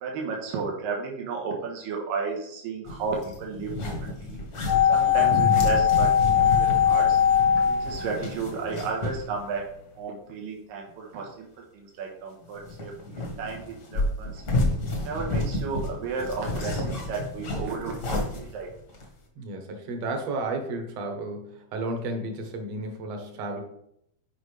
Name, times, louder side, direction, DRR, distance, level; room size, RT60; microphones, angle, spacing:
voice 1, 0.0-3.7 4.0-4.4 4.9-7.2 7.7-9.6 10.0-11.5 11.7-14.4 15.0-17.9 18.3-18.7, right 4 dB, 90° right, -1 dB, 2.9 m, -33 dB
sound 1, 2.9-9.3 9.5-9.6 12.6-19.1, left 1 dB, 50° left, 1.2 m, -31 dB
sound 2, 4.7-8.8 9.0-9.1, left 9 dB, 80° left, 1.3 m, -21 dB
voice 2, 19.4-23.6, right 2 dB, 60° right, 4 dB, 1.9 m, -32 dB
9.2 x 5.2 x 3.3 m, 0.74 s
omnidirectional pair, 3.9 m